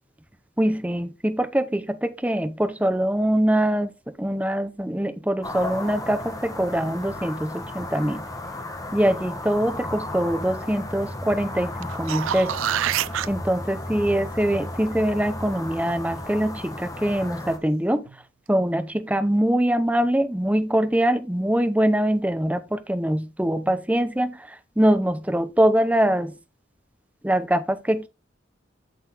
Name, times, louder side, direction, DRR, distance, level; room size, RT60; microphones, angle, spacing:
voice 1, 0.6-8.3 8.9-12.6 13.3-18.1 18.5-26.3 27.2-28.1, right 1 dB, 5° right, 0.7 m, -23 dB
sound 1, 5.4-17.6, left 1 dB, 15° left, 1.2 m, -34 dB
sound 2, 11.8-13.3 18.1-18.2, right 11 dB, 80° right, 0.4 m, -26 dB
8.4 x 6.6 x 3.7 m
head